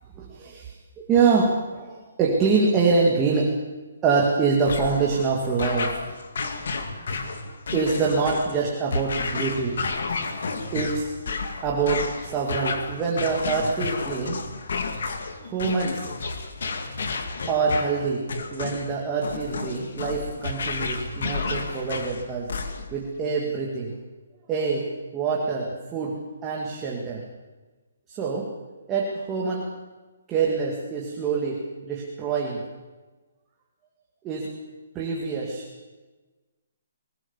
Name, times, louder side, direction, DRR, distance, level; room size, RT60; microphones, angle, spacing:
voice 1, 0.2-0.7 1.0-3.5 4.0-6.0 7.7-9.8 10.7-11.1 11.6-14.4 15.4-16.1 17.5-18.2 18.5-22.5 22.9-23.9 24.5-27.2 28.1-28.5 28.9-29.7 30.3-32.7 34.2-34.5 34.9-35.6, right 4 dB, 10° right, -2 dB, 2.0 m, -25 dB
sound 1, 4.7-23.0, left 4 dB, 55° left, 2.2 m, -31 dB
20.0 x 19.0 x 7.2 m, 1.3 s
hypercardioid pair, 175°, 0 cm